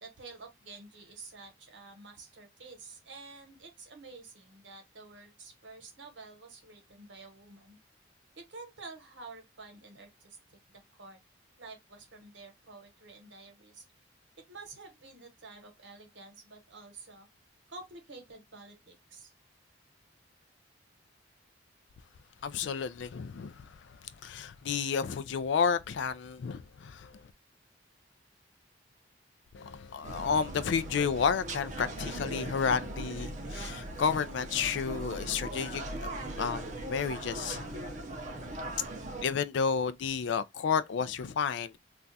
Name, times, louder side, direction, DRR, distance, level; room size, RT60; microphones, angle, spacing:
voice 1, 0.0-7.8 8.4-11.2 11.6-13.8 14.5-17.3 17.7-19.3, right 3 dB, 65° right, 1.0 m, -50 dB
voice 2, 22.4-27.2 29.5-37.9 39.2-41.8, left 6 dB, 65° left, 0.3 m, -31 dB
sound 1, 30.0-39.3, right 1 dB, 35° right, 0.5 m, -39 dB
2.4 x 2.2 x 3.9 m
head